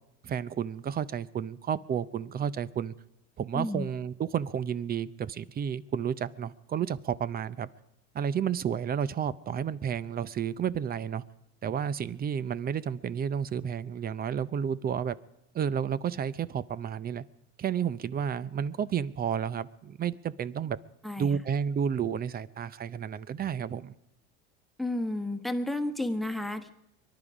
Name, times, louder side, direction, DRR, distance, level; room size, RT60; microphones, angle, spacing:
voice 1, 0.2-2.9 3.4-7.7 8.1-11.2 11.6-15.2 15.5-17.2 17.6-20.8 21.2-23.9, right 8 dB, 30° right, 18 dB, 0.6 m, -31 dB
voice 2, 3.5-3.9 21.0-21.4 24.8-26.7, left 1 dB, ahead, 9 dB, 1.3 m, -32 dB
24.0 x 11.0 x 4.9 m, 0.88 s
supercardioid pair, 100°, 32 cm